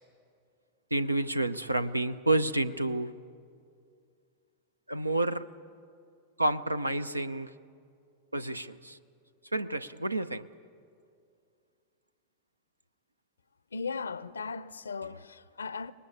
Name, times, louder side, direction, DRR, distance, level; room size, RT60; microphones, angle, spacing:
voice 1, 0.9-3.1 4.9-5.4 6.4-7.5 8.3-9.0 9.5-10.4, right 2 dB, 85° right, 0.6 m, -29 dB
voice 2, 13.7-15.9, left 5 dB, 75° left, 0.6 m, -37 dB
23.5 x 20.0 x 8.8 m
figure-of-eight pair, 90°, 0 cm